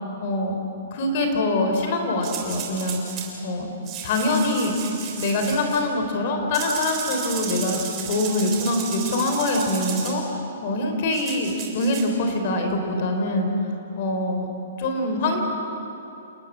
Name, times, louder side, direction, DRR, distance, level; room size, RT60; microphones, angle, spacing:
voice 1, 0.2-0.6 0.9-3.0 3.4-3.7 4.0-4.8 5.2-10.2 10.6-13.5 14.0-14.5 14.8-15.4, left 2 dB, 35° left, 4 dB, 3.5 m, -24 dB
sound 1, 2.2-3.3 3.9-5.8 6.5-10.2 11.1-12.1, right 7 dB, 20° right, 3.4 m, -33 dB
29.0 x 13.5 x 9.7 m, 2.8 s
hypercardioid pair, 175°, 0 cm